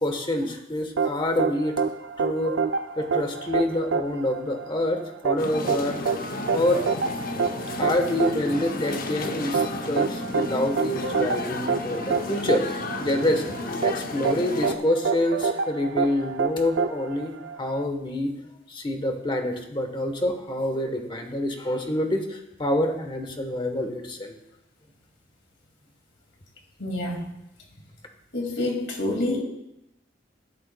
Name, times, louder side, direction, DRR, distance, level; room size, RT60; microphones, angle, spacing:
voice 1, 0.0-1.8 2.2-2.5 3.0-6.0 6.5-6.8 7.8-12.6 13.0-13.5 13.8-17.3 17.6-18.3 18.7-24.3, left 1 dB, 25° left, 5 dB, 1.1 m, -26 dB
sound 1, 1.0-17.8, right 5 dB, 90° right, 0.5 m, -27 dB
sound 2, 5.4-14.8, left 2 dB, 50° left, 0.7 m, -33 dB
voice 2, 26.8-27.3 28.3-29.4, left 1 dB, 70° left, 1 dB, 2.3 m, -27 dB
13.5 x 11.0 x 2.3 m, 0.87 s
head